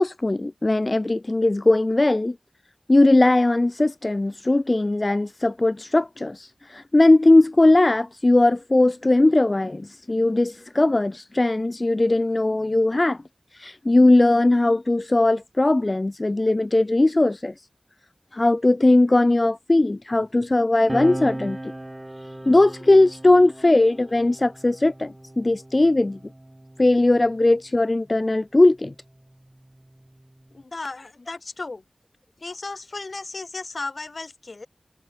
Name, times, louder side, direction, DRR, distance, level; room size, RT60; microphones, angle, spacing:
voice 1, 0.0-2.4 2.9-13.2 13.5-17.5 18.3-21.7 22.2-26.2 26.8-28.9, left 2 dB, 40° left, 0.6 m, -19 dB
sound 1, 20.9-27.8 28.8-30.6, right 1 dB, 20° right, 4.3 m, -38 dB
voice 2, 30.5-31.8 32.4-34.7, left 3 dB, 60° left, 5.5 m, -35 dB
wide cardioid pair, 70°, 0 cm